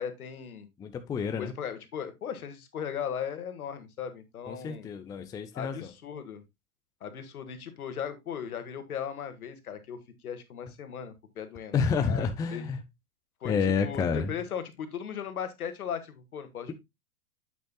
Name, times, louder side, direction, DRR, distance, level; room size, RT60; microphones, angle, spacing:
voice 1, 0.0-0.7 1.4-4.9 5.5-6.4 7.0-11.8 12.0-12.2 12.5-12.7 13.4-16.7, left 8 dB, 70° left, 1.9 m, -37 dB
voice 2, 0.8-1.5 4.5-5.9 11.7-12.8 13.4-14.3, left 5 dB, 10° left, 0.5 m, -29 dB
8.6 x 8.3 x 2.2 m
hypercardioid pair, 115°, 45 cm